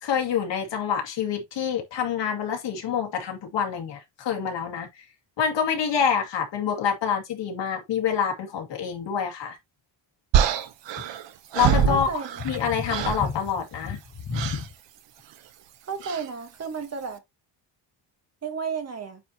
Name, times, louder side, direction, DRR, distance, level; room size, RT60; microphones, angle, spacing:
voice 1, 0.0-4.9 5.4-9.6 11.5-12.1 12.4-14.0 14.2-14.6, left 7 dB, 70° left, 2.5 m, -26 dB
sound 1, 10.3-12.6 12.9-13.3 14.3-14.7 16.0-16.3, right 8 dB, 70° right, 1.0 m, -25 dB
voice 2, 11.9-12.4 15.8-17.2 18.4-19.2, right 6 dB, 35° right, 1.4 m, -32 dB
9.0 x 4.3 x 2.9 m
cardioid pair, 170°, 45 cm